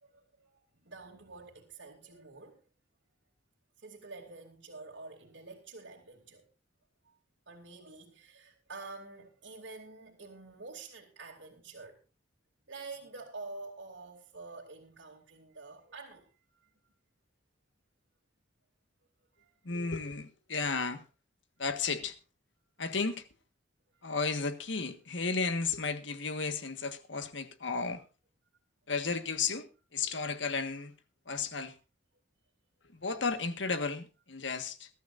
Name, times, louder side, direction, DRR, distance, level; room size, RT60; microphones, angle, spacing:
voice 1, 0.0-2.6 3.8-6.4 7.0-7.2 7.5-12.0 12.7-16.9 19.4-19.5 23.9-24.0, right 3 dB, 85° right, 2.8 m, -48 dB
voice 2, 19.6-21.0 21.6-22.1 22.8-23.2 24.0-28.0 28.9-30.9 31.3-31.7 32.9-34.9, left 4 dB, 75° left, 1.6 m, -33 dB
21.5 x 13.5 x 2.6 m
head